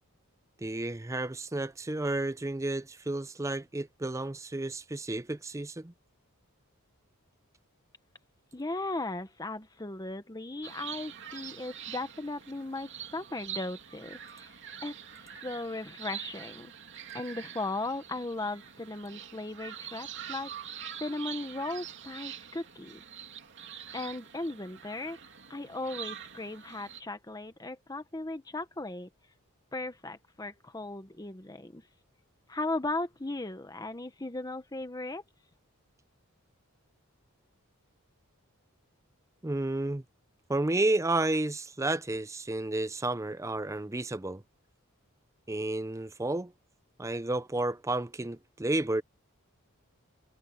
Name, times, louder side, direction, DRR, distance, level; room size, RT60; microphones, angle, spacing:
voice 1, 0.6-5.9 39.4-40.0 40.5-44.4 45.5-46.5 47.0-49.0, right 2 dB, 15° right, 0.5 m, -31 dB
voice 2, 8.5-14.6 14.8-16.7 17.1-20.5 21.0-23.0 23.9-25.2 25.5-29.1 29.7-31.8 32.5-35.2, left 2 dB, 15° left, 1.0 m, -37 dB
sound 1, 10.6-27.0, right 9 dB, 55° right, 2.8 m, -45 dB
head